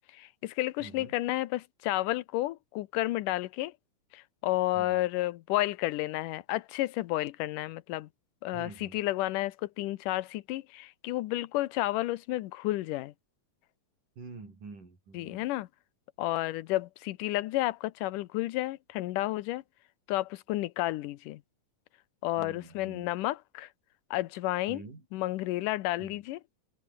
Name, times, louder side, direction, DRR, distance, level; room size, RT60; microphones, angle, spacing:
voice 1, 0.1-3.7 4.1-8.1 8.4-13.1 15.1-15.7 16.2-19.6 20.1-21.4 22.2-23.7 24.1-24.8 25.1-26.4, left 17 dB, 90° left, 2.4 m, -31 dB
voice 2, 0.8-1.1 4.7-5.1 8.5-9.0 14.2-15.5 22.4-23.1 24.7-25.1 26.0-26.2, right 4 dB, 85° right, 8.5 m, -47 dB
omnidirectional pair, 3.6 m